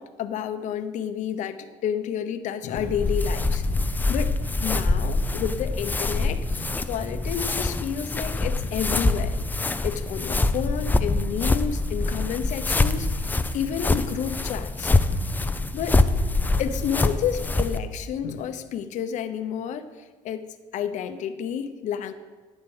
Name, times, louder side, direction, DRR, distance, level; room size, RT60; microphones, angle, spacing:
voice 1, 0.0-3.6 4.1-4.3 4.6-9.4 9.8-13.1 13.5-14.9 15.7-16.0 16.6-19.9 20.2-20.5 20.7-22.1, left 8 dB, 60° left, 9 dB, 0.8 m, -30 dB
sound 1, 2.8-17.8, left 2 dB, 15° left, 0.4 m, -25 dB
10.5 x 7.4 x 4.9 m, 1.4 s
cardioid pair, 115°, 14 cm